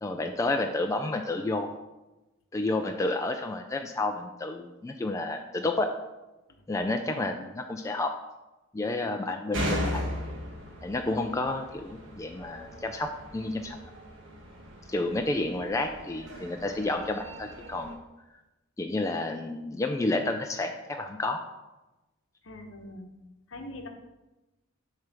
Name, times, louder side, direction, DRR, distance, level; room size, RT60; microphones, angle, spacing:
voice 1, 0.0-1.7 2.5-5.9 6.7-8.1 8.7-10.0 10.8-13.8 14.9-18.0 18.8-21.4, left 2 dB, 15° left, 4 dB, 0.3 m, -30 dB
sound 1, 9.5-17.9, equal, 60° right, 1.3 m, -38 dB
voice 2, 22.4-23.1 23.5-23.9, left 1 dB, 70° left, 5 dB, 0.9 m, -42 dB
6.8 x 3.3 x 6.0 m, 1.0 s
head